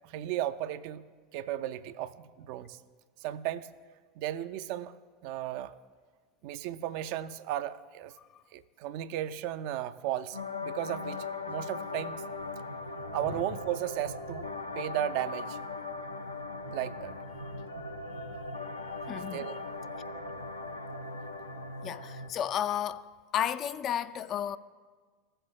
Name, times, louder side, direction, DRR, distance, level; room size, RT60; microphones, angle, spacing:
voice 1, 0.0-1.0 1.3-2.8 3.2-3.7 4.2-4.9 5.2-5.7 6.4-8.1 8.5-12.2 13.1-14.5 14.8-15.6 16.7-17.1 19.1-19.6 20.1-20.2, right 12 dB, 55° right, 0.4 m, -35 dB
sound 1, 10.3-22.3, left 3 dB, 80° left, 0.6 m, -39 dB
voice 2, 19.1-19.5 21.8-23.1 23.3-24.6, left 10 dB, 40° left, 0.3 m, -32 dB
15.5 x 7.7 x 2.2 m
figure-of-eight pair, 80°, 0 cm